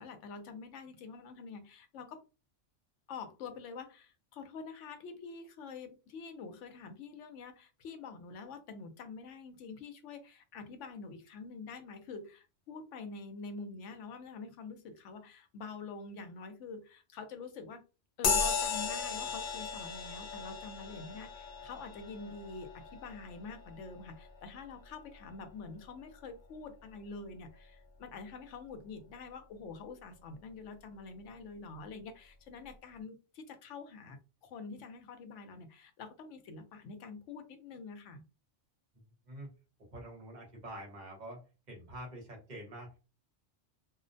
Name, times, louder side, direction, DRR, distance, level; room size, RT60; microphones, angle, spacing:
voice 1, 0.0-2.2 3.1-17.8 18.2-38.2, left 4 dB, 80° left, 0.9 m, -46 dB
sound 1, 18.2-26.1, left 5 dB, 55° left, 0.6 m, -37 dB
voice 2, 39.9-41.4 41.7-43.0, right 1 dB, 40° right, 0.9 m, -46 dB
2.4 x 2.0 x 2.5 m
omnidirectional pair, 1.2 m